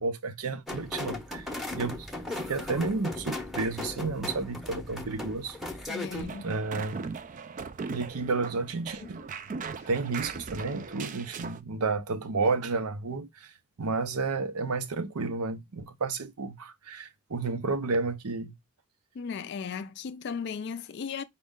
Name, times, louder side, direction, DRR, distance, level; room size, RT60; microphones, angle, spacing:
voice 1, 0.0-2.1 2.4-5.6 6.4-7.0 7.9-9.2 9.9-13.5 13.8-18.6, right 3 dB, 90° right, 0.7 m, -31 dB
sound 1, 0.7-6.2, left 2 dB, ahead, 0.7 m, -37 dB
voice 2, 5.9-6.5 9.0-9.1 9.8-9.9 19.1-21.2, left 6 dB, 50° left, 0.3 m, -36 dB
sound 2, 6.1-11.6, right 5 dB, 35° right, 0.3 m, -39 dB
5.1 x 2.1 x 3.6 m
head